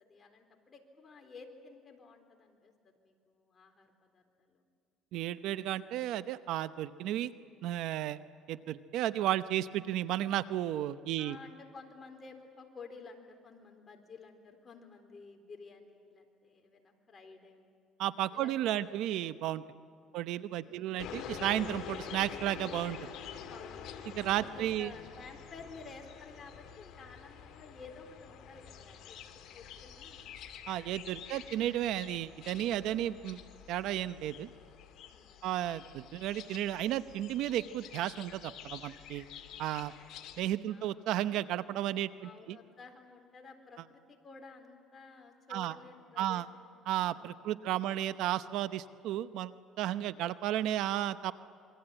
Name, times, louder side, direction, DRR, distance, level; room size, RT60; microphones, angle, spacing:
voice 1, 0.0-4.6 11.2-17.6 18.3-19.2 20.0-20.3 20.6-21.1 23.5-23.9 24.3-29.2 29.5-30.4 35.1-35.5 40.7-41.0 42.2-48.1, left 4 dB, 30° left, 4 dB, 4.0 m, -53 dB
voice 2, 5.1-7.3 7.6-8.2 8.5-11.4 18.0-19.6 20.1-23.1 24.2-24.9 30.7-33.4 33.7-34.5 35.4-39.3 39.6-39.9 40.4-42.6 45.5-45.7 46.2-46.4 46.9-51.3, right 12 dB, 75° right, 13 dB, 0.7 m, -33 dB
sound 1, 21.0-40.5, left 8 dB, 60° left, 2.7 m, -47 dB
27.0 x 23.0 x 9.0 m, 2.2 s
cardioid pair, 110°, 0 cm